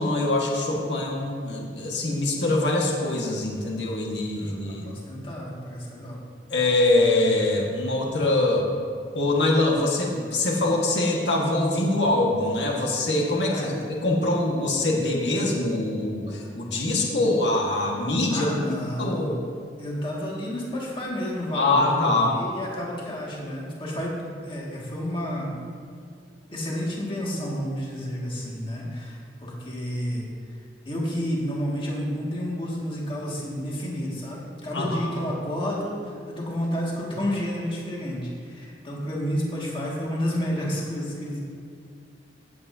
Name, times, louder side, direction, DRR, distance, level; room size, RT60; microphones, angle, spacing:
voice 1, 0.0-4.8 6.5-8.7 9.1-13.7 14.0-18.5 19.0-19.4 21.5-22.3 34.7-35.1, left 2 dB, 90° left, -2 dB, 1.6 m, -23 dB
voice 2, 4.4-6.2 13.5-13.8 18.3-19.4 19.8-25.5 26.5-30.6 30.9-41.4, equal, 30° left, -4 dB, 2.0 m, -30 dB
16.0 x 8.6 x 2.8 m, 2.2 s
head